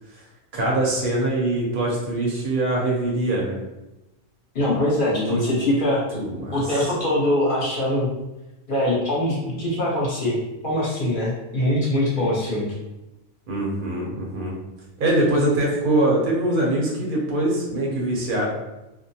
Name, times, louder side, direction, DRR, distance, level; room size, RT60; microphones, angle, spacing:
voice 1, 0.5-3.6 5.1-5.4 6.1-6.9 13.5-14.5 15.0-18.5, right 1 dB, 50° right, -3 dB, 0.7 m, -23 dB
voice 2, 4.5-6.0 6.5-8.1 8.7-10.4 10.6-12.7, left 1 dB, 45° left, -6 dB, 0.9 m, -22 dB
2.5 x 2.1 x 2.7 m, 0.97 s
omnidirectional pair, 1.3 m